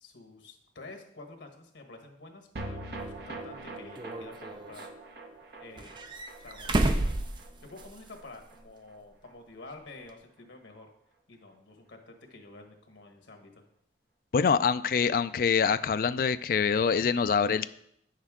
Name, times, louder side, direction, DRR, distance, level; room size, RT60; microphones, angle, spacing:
voice 1, 0.0-4.9 5.6-7.1 7.6-10.9 11.3-13.6, left 3 dB, 90° left, 4 dB, 1.4 m, -49 dB
sound 1, 2.6-9.0 9.3-9.4 9.6-9.7, right 2 dB, 60° right, 1.0 m, -43 dB
sound 2, 3.0-3.1 4.0-4.9 5.8-8.1 8.4-8.5 10.1-10.2, right 2 dB, 25° right, 0.5 m, -30 dB
voice 2, 14.3-17.7, left 6 dB, 50° left, 14 dB, 0.3 m, -25 dB
8.9 x 6.5 x 3.7 m, 0.74 s
head